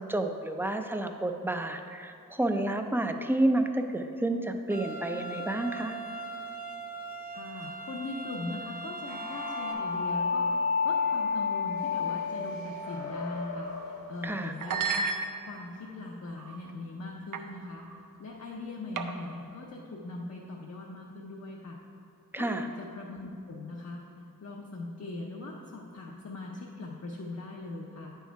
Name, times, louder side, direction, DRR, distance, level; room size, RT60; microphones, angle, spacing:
voice 1, 0.0-6.0 14.2-14.5 22.3-22.7, right 1 dB, 5° right, 5 dB, 0.4 m, -30 dB
sound 1, 4.7-9.7, right 3 dB, 25° right, 0.8 m, -40 dB
voice 2, 7.3-15.1 15.5-17.9 18.2-21.8 22.4-28.1, left 2 dB, 50° left, -2 dB, 0.6 m, -40 dB
sound 2, 9.1-14.2, left 5 dB, 75° left, 1.0 m, -31 dB
sound 3, 13.6-13.9 14.6-15.8 16.4-16.7 17.3-17.5 17.8-18.0 19.0-19.4, right 5 dB, 65° right, 0.5 m, -33 dB
9.3 x 4.6 x 4.6 m, 2.5 s
wide cardioid pair, 110°, 34 cm